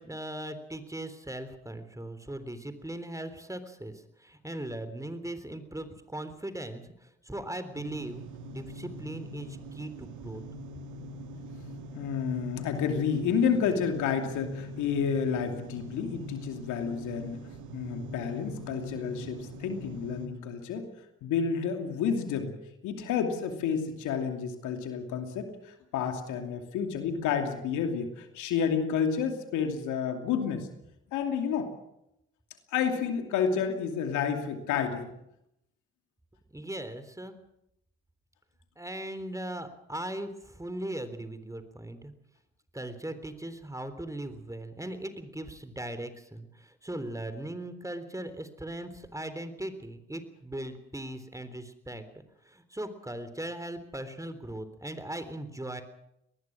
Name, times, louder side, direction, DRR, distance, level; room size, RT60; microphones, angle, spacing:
voice 1, 0.0-10.4 36.5-37.4 38.8-42.1 42.7-52.1 52.4-55.8, right 1 dB, 10° right, 11 dB, 3.6 m, -39 dB
sound 1, 7.7-20.3, equal, 80° right, 2.1 m, -43 dB
voice 2, 11.9-17.4 17.7-20.8 21.2-22.5 22.8-30.7 31.1-31.7 32.7-35.1, left 7 dB, 75° left, 5 dB, 2.8 m, -30 dB
23.0 x 20.0 x 6.3 m, 0.81 s
hypercardioid pair, 45°, 30 cm